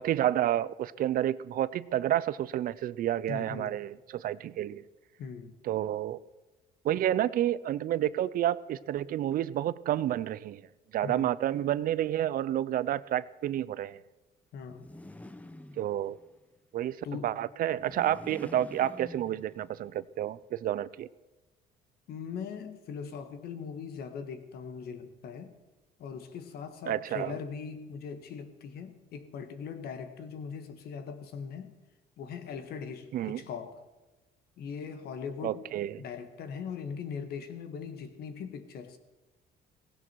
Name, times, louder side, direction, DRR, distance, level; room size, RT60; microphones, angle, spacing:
voice 1, 0.0-4.8 5.6-6.2 6.8-10.6 10.9-14.0 15.8-16.2 16.7-17.0 17.2-21.1 26.9-27.4 33.1-33.4 35.4-36.0, right 12 dB, 60° right, 0.5 m, -30 dB
voice 2, 3.3-3.8 5.2-5.6 11.0-11.3 14.5-14.9 17.0-17.4 22.1-25.5 26.0-31.7 32.2-33.9 34.6-35.7 36.0-39.0, left 6 dB, 70° left, 1.8 m, -40 dB
sound 1, 14.6-16.3 17.7-19.8, left 1 dB, 10° left, 0.8 m, -48 dB
17.0 x 16.0 x 4.6 m
cardioid pair, 110°, 17 cm